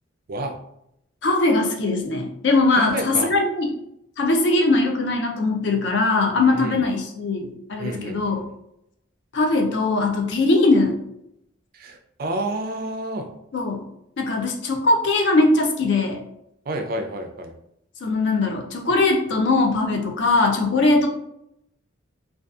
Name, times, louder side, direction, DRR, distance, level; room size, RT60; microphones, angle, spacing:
voice 1, 1.2-3.7 4.2-8.4 9.3-11.0 13.5-13.8 14.2-16.2 18.0-21.1, left 2 dB, 60° left, 3 dB, 0.4 m, -20 dB
voice 2, 2.7-3.3 6.5-6.8 7.8-8.3 11.7-13.3 16.7-17.5, right 1 dB, 45° right, 5 dB, 0.3 m, -29 dB
2.6 x 2.3 x 2.3 m, 0.77 s
head